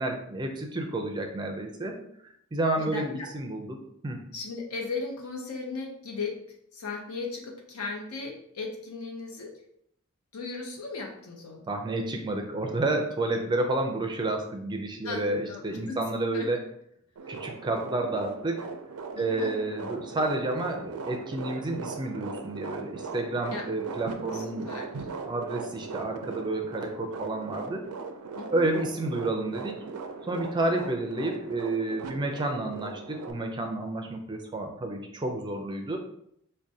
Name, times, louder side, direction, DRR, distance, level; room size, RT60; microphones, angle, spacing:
voice 1, 0.0-2.0 2.5-4.2 11.7-16.7 17.3-18.7 19.2-24.7 25.3-27.8 28.5-29.8 30.2-36.0, right 2 dB, 20° right, 3 dB, 0.4 m, -30 dB
voice 2, 2.8-3.3 4.3-6.4 6.7-9.5 10.3-11.7 15.0-15.2 15.5-15.6 15.9-16.0 16.3-16.5 19.1-19.5 23.5-23.6 24.3-24.9 28.3-28.7, left 4 dB, 85° left, 1 dB, 0.8 m, -36 dB
sound 1, 17.2-33.3, right 4 dB, 90° right, 0.4 m, -39 dB
4.7 x 2.2 x 2.6 m, 0.71 s
head